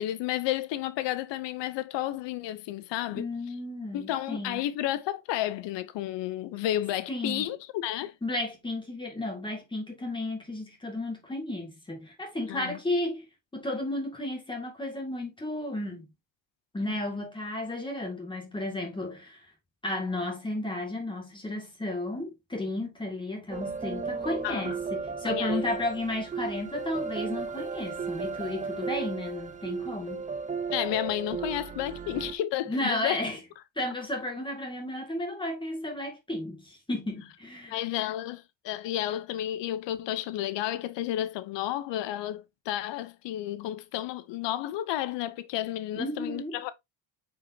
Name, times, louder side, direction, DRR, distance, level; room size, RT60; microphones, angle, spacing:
voice 1, 0.0-3.3 3.9-8.1 12.5-12.8 24.4-24.8 25.2-25.6 30.7-33.2 37.7-46.7, left 13 dB, 65° left, 0.9 m, -32 dB
voice 2, 3.1-4.7 7.1-7.5 8.2-13.3 13.5-16.1 16.7-19.4 19.8-30.2 32.7-33.4 33.8-37.7 46.0-46.6, left 1 dB, 10° left, 2.2 m, -33 dB
sound 1, 23.5-32.3, right 5 dB, 15° right, 0.7 m, -35 dB
8.1 x 5.0 x 2.8 m
cardioid pair, 155°, 46 cm